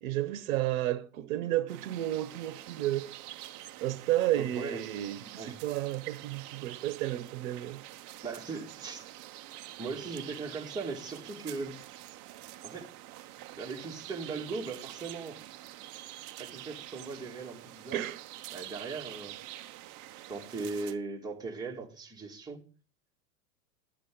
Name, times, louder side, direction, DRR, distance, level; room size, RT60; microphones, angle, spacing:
voice 1, 0.0-3.1 3.8-7.8 17.9-18.2, right 14 dB, 60° right, 1.2 m, -32 dB
sound 1, 1.7-20.9, right 15 dB, 40° right, 0.8 m, -47 dB
voice 2, 4.4-4.8 5.4-5.5 8.2-9.1 9.8-11.7 12.6-12.9 13.6-15.4 16.4-18.0 18.5-19.4 20.3-22.6, right 4 dB, 10° right, 2.3 m, -38 dB
12.0 x 8.3 x 3.9 m
hypercardioid pair, 100°, 45 cm